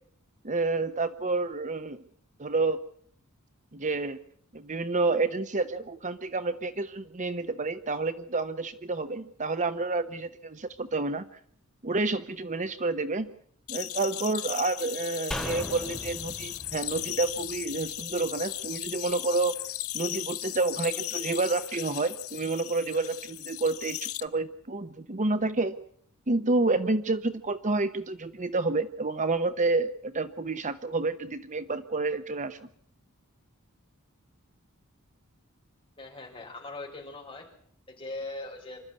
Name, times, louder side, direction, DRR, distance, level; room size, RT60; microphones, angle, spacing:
voice 1, 0.4-2.0 2.4-2.8 3.7-4.2 4.5-11.2 11.8-13.3 13.7-19.5 19.9-25.8 26.3-32.6, right 3 dB, 35° right, 11 dB, 0.9 m, -29 dB
sound 1, 13.7-24.2, left 14 dB, 75° left, 0.9 m, -37 dB
sound 2, 15.3-18.6 18.9-19.0, left 1 dB, 5° left, 3.5 m, -39 dB
voice 2, 36.0-37.5 37.9-38.8, left 2 dB, 25° left, 0 dB, 5.8 m, -40 dB
26.5 x 13.0 x 9.5 m, 0.62 s
head